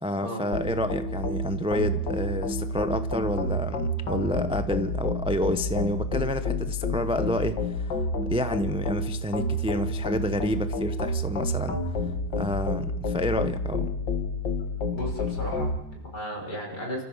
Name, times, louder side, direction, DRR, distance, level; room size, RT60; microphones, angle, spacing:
voice 1, 0.0-11.8 12.4-13.9, equal, 10° right, 10 dB, 0.3 m, -29 dB
sound 1, 0.5-15.8, left 1 dB, 85° left, 2.5 m, -29 dB
voice 2, 14.9-17.0, equal, 65° left, 0 dB, 6.0 m, -34 dB
29.5 x 14.5 x 7.3 m, 0.97 s
omnidirectional pair, 1.9 m